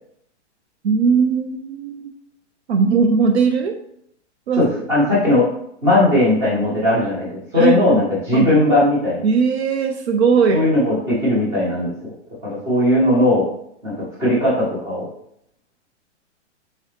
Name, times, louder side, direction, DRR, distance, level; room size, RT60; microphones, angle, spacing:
voice 1, 0.8-2.1 2.7-3.8 4.5-4.6 7.6-7.8 8.3-8.5 9.2-10.7, right 5 dB, 65° right, 5 dB, 0.5 m, -18 dB
voice 2, 4.6-5.4 5.8-9.2 10.5-12.1 12.4-13.5 13.8-15.0, left 1 dB, 10° right, -8 dB, 0.8 m, -18 dB
3.9 x 2.6 x 3.3 m, 0.71 s
hypercardioid pair, 170°, 36 cm